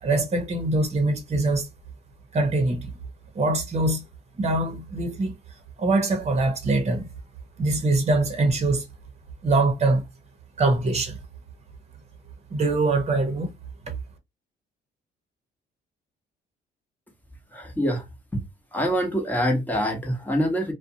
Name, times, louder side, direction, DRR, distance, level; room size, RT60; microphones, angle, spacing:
voice 1, 0.0-1.7 2.3-2.9 3.3-4.0 4.4-5.4 5.8-7.1 7.6-8.8 9.4-10.1 10.6-11.2 12.5-13.5 13.8-13.9, right 2 dB, 35° right, 1.0 m, -23 dB
voice 2, 17.5-18.1 18.7-20.7, equal, 10° left, 1.1 m, -25 dB
2.5 x 2.3 x 2.7 m
cardioid pair, 90°, 20 cm